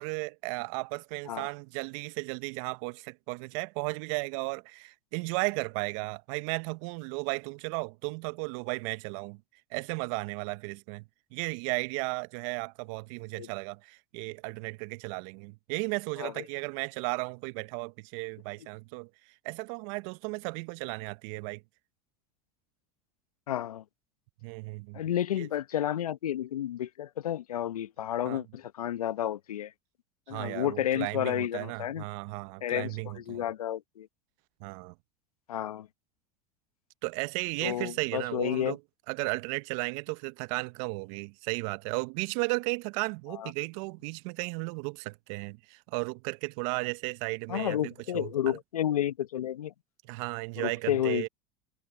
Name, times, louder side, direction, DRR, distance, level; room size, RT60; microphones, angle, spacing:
voice 1, 0.0-9.4 9.7-11.0 11.3-19.1 19.4-21.6 24.4-25.0 25.4-25.5 28.3-28.4 30.3-33.4 34.6-34.9 37.0-38.8 39.1-48.6 50.0-51.3, right 29 dB, 65° right, 1.1 m, -35 dB
voice 2, 23.5-23.8 24.9-29.7 30.3-32.0 32.6-34.1 35.5-35.9 37.6-38.8 43.3-43.5 47.5-49.7 50.6-51.3, left 11 dB, 85° left, 1.2 m, -31 dB
hypercardioid pair, 80°, 19 cm